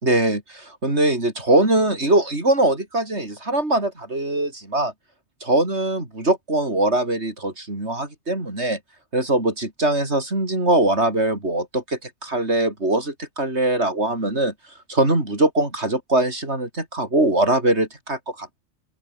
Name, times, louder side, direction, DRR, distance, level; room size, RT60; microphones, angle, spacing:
voice 1, 0.0-4.9 5.4-8.8 9.1-14.5 14.9-18.6, right 2 dB, 65° right, 6.1 m, -22 dB
open air
omnidirectional pair, 1.3 m